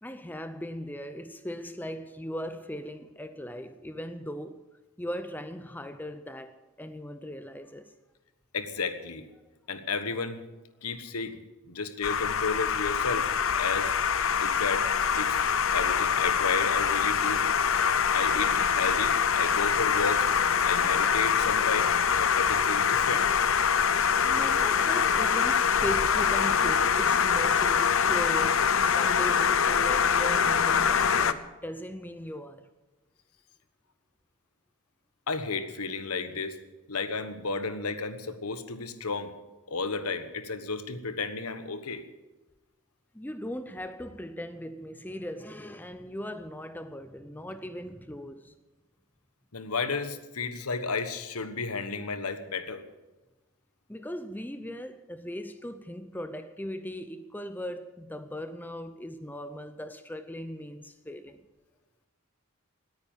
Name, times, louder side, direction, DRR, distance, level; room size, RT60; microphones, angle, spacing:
voice 1, 0.0-4.6 5.0-7.9 24.2-32.7 43.1-48.5 53.9-61.4, equal, 10° left, 0.6 m, -38 dB
voice 2, 8.5-9.2 9.7-10.4 10.8-11.4 11.7-13.3 13.5-13.9 14.4-14.9 15.2-15.4 15.7-17.5 18.1-20.3 20.6-21.9 22.2-23.3 35.3-36.6 36.9-39.3 39.7-42.0 49.5-52.8, left 4 dB, 85° left, 1.3 m, -32 dB
sound 1, 12.0-31.3, left 7 dB, 65° left, 0.7 m, -24 dB
18.5 x 9.7 x 7.2 m
head